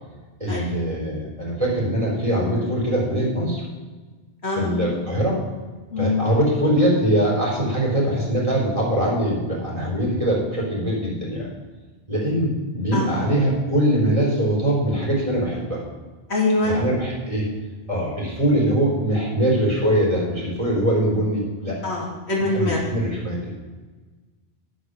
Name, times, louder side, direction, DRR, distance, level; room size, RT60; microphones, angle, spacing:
voice 1, 0.4-3.6 4.6-5.4 6.0-11.5 12.1-15.8 16.6-17.5 17.9-21.8 22.5-23.4, right 1 dB, 30° right, -4 dB, 3.8 m, -22 dB
voice 2, 4.4-4.8 5.9-6.2 12.9-13.1 16.3-16.8 21.8-22.8, left 2 dB, 85° left, -3 dB, 2.8 m, -23 dB
10.5 x 7.8 x 6.3 m, 1.3 s
omnidirectional pair, 1.1 m